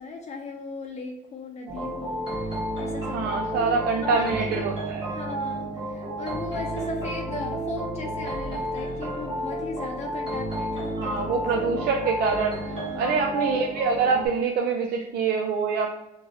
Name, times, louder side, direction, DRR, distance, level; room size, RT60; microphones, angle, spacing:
voice 1, 0.0-4.6 5.1-11.9 12.7-13.3, left 3 dB, 40° left, 2 dB, 0.5 m, -37 dB
sound 1, 1.7-14.3, right 1 dB, 30° right, 1.3 m, -31 dB
voice 2, 3.1-5.0 11.0-15.9, right 5 dB, 65° right, 1 dB, 0.4 m, -25 dB
3.9 x 2.4 x 2.7 m, 0.94 s
cardioid pair, 110°, 17 cm